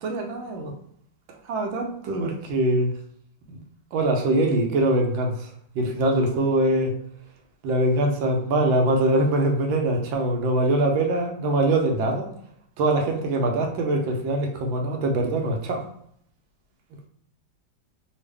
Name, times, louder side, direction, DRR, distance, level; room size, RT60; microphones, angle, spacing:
voice 1, 0.0-0.7 1.5-2.9 3.5-3.6 3.9-5.5 5.7-6.9 7.6-12.3 12.8-15.8, right 1 dB, 90° right, 2 dB, 1.4 m, -23 dB
3.5 x 2.3 x 3.3 m, 0.67 s
omnidirectional pair, 2.1 m